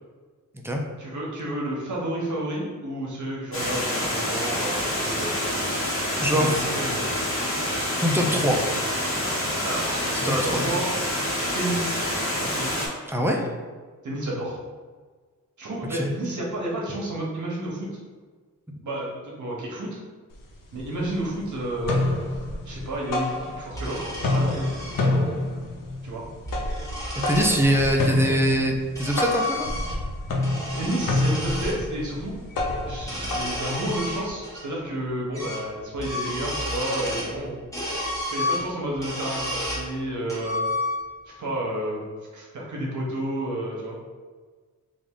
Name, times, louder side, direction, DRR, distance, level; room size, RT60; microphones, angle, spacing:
voice 1, 1.0-5.3 6.4-7.0 9.6-10.9 11.5-12.0 12.4-12.7 14.0-14.6 15.6-17.9 18.8-20.0 20.7-22.0 22.3-22.4 22.6-25.3 26.0-26.2 30.7-32.4 32.9-37.5 38.3-40.6 41.3-42.0 42.3-44.0, right 1 dB, 60° right, -3 dB, 1.0 m, -31 dB
Water, 3.5-12.9, left 1 dB, 40° left, 1.2 m, -27 dB
voice 2, 6.2-6.6 8.0-8.6 10.1-10.7 13.1-13.5 15.9-16.1 27.3-29.7, equal, 10° right, 1 dB, 0.4 m, -23 dB
sound 1, 20.3-20.4 20.8-21.4 21.7-23.9 24.1-34.3, left 2 dB, 75° left, 0.6 m, -27 dB
sound 2, 23.7-25.0 26.3-27.6 28.5-30.1 30.4-31.8 33.0-34.6 34.9-35.0 35.3-35.7 35.9-37.4 37.7-39.9 40.3-41.2, left 1 dB, 10° left, 1.0 m, -31 dB
3.4 x 2.6 x 3.6 m, 1.4 s
wide cardioid pair, 115°, 33 cm